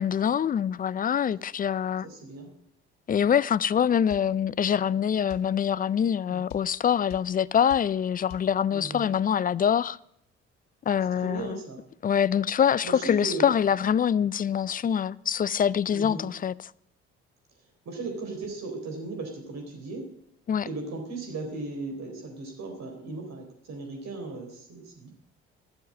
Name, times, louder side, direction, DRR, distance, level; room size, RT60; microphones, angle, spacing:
voice 1, 0.0-2.1 3.1-10.0 10.9-11.6 12.0-16.5 20.5-20.7, left 8 dB, 30° left, 0.4 m, -25 dB
voice 2, 2.0-2.5 6.3-6.4 8.7-9.1 11.1-11.8 12.8-13.5 15.9-16.3 17.9-20.1 20.7-25.1, right 3 dB, 55° right, 4.0 m, -36 dB
sound 1, 4.1-4.3 5.3-5.5 6.5-6.7 7.1-7.3 7.7-7.9 8.3-8.5, left 12 dB, 70° left, 0.8 m, -44 dB
12.5 x 6.9 x 7.5 m
hypercardioid pair, 45°, 32 cm